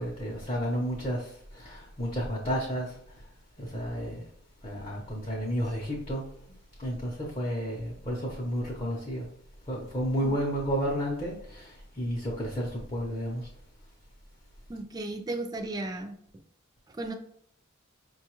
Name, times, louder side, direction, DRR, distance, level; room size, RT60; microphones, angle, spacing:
voice 1, 0.0-3.0 3.6-4.2 4.6-6.3 6.8-9.3 9.7-13.5, equal, 30° left, 0.7 m, -32 dB
voice 2, 14.7-16.1 16.9-17.1, right 2 dB, 20° right, 0.3 m, -35 dB
5.4 x 2.3 x 3.0 m
head